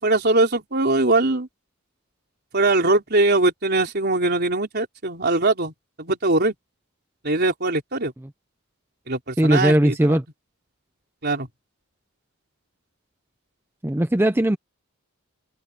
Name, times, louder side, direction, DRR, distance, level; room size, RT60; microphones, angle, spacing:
voice 1, 0.0-1.5 2.5-6.5 7.2-8.1 9.1-10.2 11.2-11.5, right 2 dB, 50° right, 4.2 m, -21 dB
voice 2, 9.4-10.2 13.8-14.6, right 1 dB, 10° right, 0.6 m, -18 dB
head